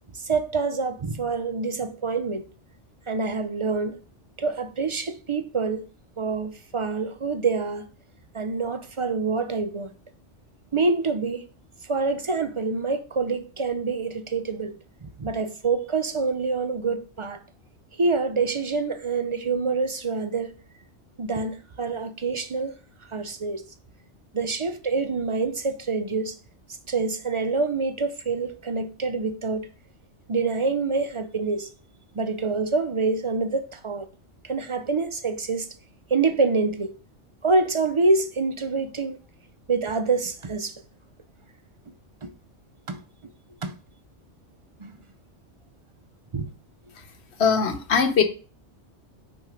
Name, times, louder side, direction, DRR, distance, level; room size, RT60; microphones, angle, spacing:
voice 1, 0.1-2.4 3.1-4.0 4.4-5.9 6.2-7.8 8.3-9.9 10.7-11.5 11.8-17.4 17.9-20.5 21.2-22.8 23.1-23.6 24.3-26.4 26.9-29.7 30.3-31.7 32.1-34.1 34.4-35.7 36.1-36.9 37.4-39.2 39.7-40.8 42.2-42.3 42.9-43.0 43.6-43.7 44.8-44.9 46.3-46.5, right 4 dB, 40° right, 0.4 m, -26 dB
voice 2, 47.4-48.2, left 6 dB, 65° left, 1.1 m, -20 dB
6.3 x 4.4 x 5.0 m
omnidirectional pair, 1.2 m